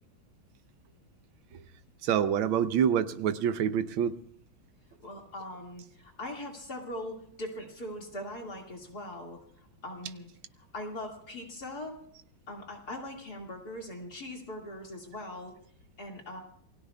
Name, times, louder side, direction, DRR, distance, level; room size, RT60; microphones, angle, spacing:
voice 1, 2.0-4.1, right 8 dB, 85° right, 12 dB, 1.6 m, -26 dB
voice 2, 5.0-10.3 10.6-12.0 12.5-15.5 16.0-16.4, left 1 dB, 50° left, 0 dB, 2.8 m, -41 dB
28.0 x 21.0 x 2.4 m, 0.64 s
omnidirectional pair, 2.2 m